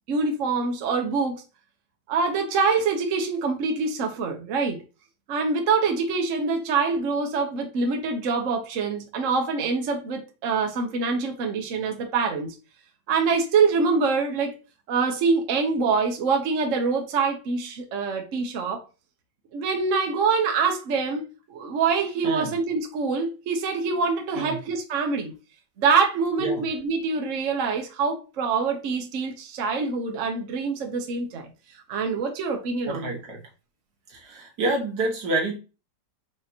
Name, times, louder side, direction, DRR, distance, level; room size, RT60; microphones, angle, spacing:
voice 1, 0.1-1.4 2.1-4.8 5.3-12.5 13.1-14.5 14.9-18.8 19.5-25.3 25.8-31.5 31.9-33.1, right 4 dB, 60° right, 1.0 m, -25 dB
voice 2, 22.2-22.5 24.4-24.6 26.4-26.7 32.9-33.4 34.1-35.6, right 2 dB, 75° right, 1.7 m, -28 dB
4.9 x 3.0 x 2.7 m
omnidirectional pair, 1.8 m